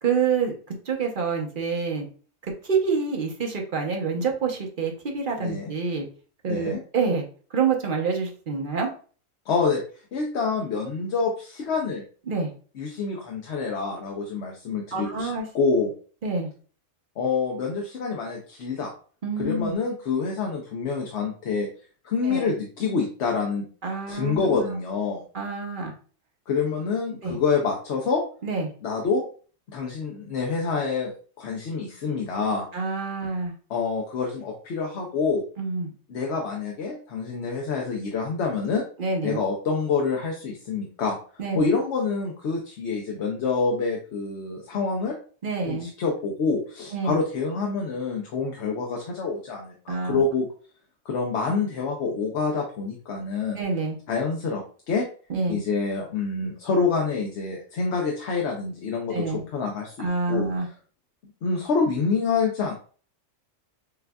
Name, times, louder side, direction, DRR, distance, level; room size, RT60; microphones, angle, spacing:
voice 1, 0.0-2.1 2.6-6.1 6.4-7.2 7.5-8.9 12.3-12.5 14.9-15.5 16.2-16.5 19.2-19.7 22.2-22.5 23.8-24.6 25.3-25.9 27.2-27.4 28.4-28.7 32.7-33.5 35.6-35.9 39.0-39.4 41.4-41.6 45.4-45.9 46.9-47.2 49.9-50.2 53.6-54.0 55.3-55.6 59.1-59.4 60.0-60.7, right 4 dB, 45° right, 1 dB, 1.0 m, -27 dB
voice 2, 5.4-5.7 6.5-6.8 9.5-9.8 10.1-12.0 12.8-15.9 17.2-18.9 19.4-21.7 22.0-23.7 24.1-25.2 26.5-28.2 28.8-29.2 29.7-31.1 31.4-32.7 33.7-35.4 36.1-38.8 39.2-41.2 41.5-45.1 45.7-50.5 51.0-53.6 54.1-55.0 55.5-60.5 61.4-62.7, left 4 dB, 60° left, 0 dB, 1.0 m, -27 dB
6.7 x 2.5 x 2.2 m, 0.40 s
omnidirectional pair, 1.3 m